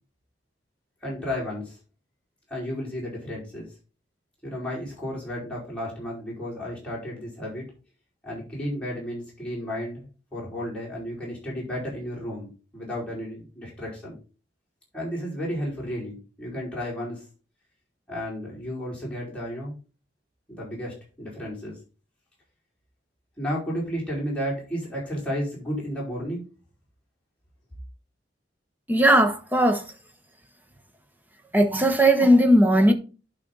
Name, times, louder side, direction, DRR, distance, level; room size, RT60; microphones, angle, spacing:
voice 1, 1.0-1.8 2.5-3.7 4.4-7.6 8.2-10.0 10.3-14.2 14.9-17.2 18.1-19.8 20.5-21.8 23.4-26.4, equal, 5° left, 4.9 m, -33 dB
voice 2, 28.9-29.8 31.5-32.9, right 1 dB, 10° right, 1.1 m, -18 dB
11.0 x 5.1 x 3.9 m
head